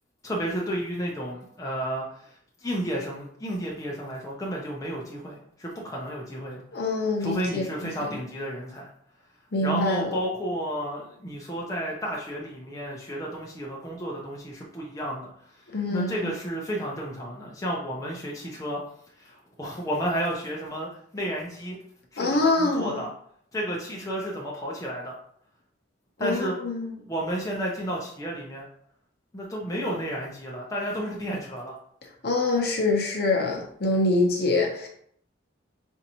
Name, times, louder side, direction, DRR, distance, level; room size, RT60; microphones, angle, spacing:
voice 1, 0.2-6.6 7.2-8.9 9.6-18.8 19.2-21.8 22.1-23.1 23.5-25.2 26.2-26.6 27.0-28.7 29.3-31.8, equal, 15° left, -3 dB, 0.5 m, -32 dB
voice 2, 6.7-7.6 9.5-10.1 15.7-16.2 22.2-23.0 26.2-26.9 32.2-34.9, left 2 dB, 55° left, 0 dB, 0.8 m, -25 dB
4.4 x 2.6 x 2.9 m, 0.64 s
head